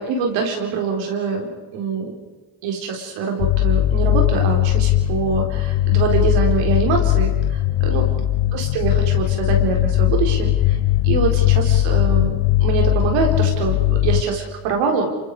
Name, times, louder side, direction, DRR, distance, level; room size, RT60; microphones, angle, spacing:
voice 1, 0.0-2.1 2.6-8.1 8.5-10.8 11.0-15.1, right 5 dB, 85° right, 2 dB, 4.5 m, -24 dB
sound 1, 3.4-14.2, left 14 dB, 65° left, 1.0 m, -19 dB
28.0 x 24.5 x 4.9 m, 1.2 s
supercardioid pair, 80°, 43 cm